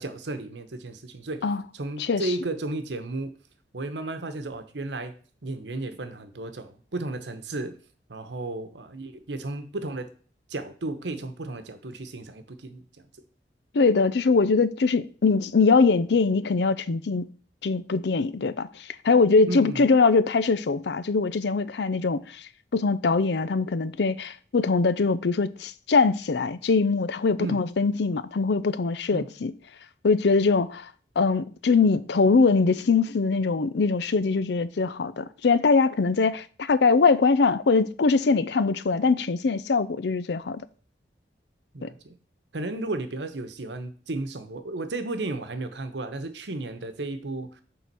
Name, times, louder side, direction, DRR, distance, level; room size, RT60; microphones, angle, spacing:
voice 1, 0.0-1.5 1.7-3.3 3.7-5.1 5.4-7.8 8.1-10.1 10.5-12.8 19.5-19.8 27.4-27.6 29.1-29.3 41.7-42.1 42.5-47.6, right 2 dB, 85° right, 1.0 m, -33 dB
voice 2, 2.0-2.3 13.7-17.3 17.6-22.4 22.7-29.5 30.0-30.9 31.2-40.6 41.8-41.9, left 4 dB, 75° left, 0.5 m, -22 dB
6.9 x 3.8 x 6.0 m
head